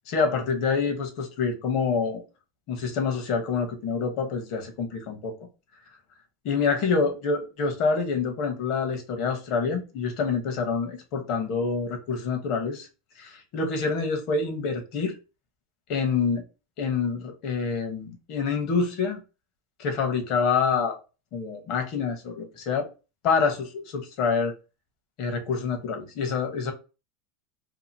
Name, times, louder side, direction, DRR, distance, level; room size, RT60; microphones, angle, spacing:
voice 1, 0.1-2.2 2.7-5.4 6.4-12.9 13.2-15.1 15.9-16.4 16.8-19.2 19.8-21.0 21.3-22.9 23.2-24.5 25.2-26.7, left 5 dB, 55° left, 1.0 m, -27 dB
2.8 x 2.5 x 2.7 m
supercardioid pair, 125°, 0 cm